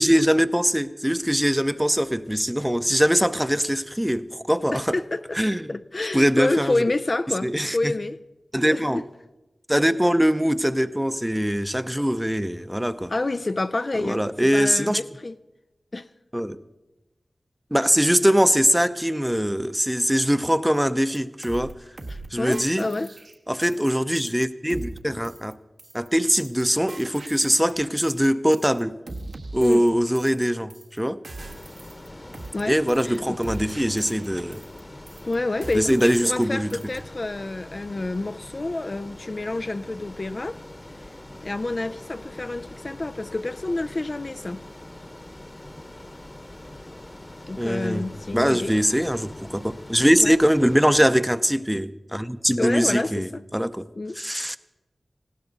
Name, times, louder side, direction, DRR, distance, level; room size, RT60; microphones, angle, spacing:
voice 1, 0.0-5.0 5.3-5.7 6.1-6.8 7.4-7.9 8.5-9.0 9.7-13.1 14.0-15.0 16.3-16.6 17.7-21.7 22.3-22.9 23.5-25.6 25.9-29.0 29.5-31.2 32.7-34.6 35.7-36.7 47.6-53.9 54.2-54.6, equal, 5° right, 0.7 m, -22 dB
voice 2, 4.7-5.4 5.7-8.2 8.7-8.8 13.1-15.3 15.9-16.1 22.1-23.1 29.6-29.9 32.5-32.8 33.0-33.4 35.2-40.6 41.4-44.6 47.5-48.8 50.2-50.4 52.6-53.4 54.0-54.2, left 2 dB, 50° left, 0.4 m, -28 dB
sound 1, 21.1-21.2 21.4-21.7 22.0-22.3 22.5-23.9 24.2-24.4 24.7-25.0 25.2-25.5 25.8-26.1 26.3-26.6 26.9-28.3 28.5-28.8 29.1-30.4 30.7-31.0 31.2-32.1 32.3-32.6 32.9-33.2 33.4-34.8 35.1-35.3 35.6-36.4 36.7-37.0, right 2 dB, 75° right, 1.5 m, -40 dB
Ocean, 31.4-51.0, left 1 dB, 30° left, 1.1 m, -43 dB
19.0 x 16.5 x 4.0 m
cardioid pair, 45°, 0 cm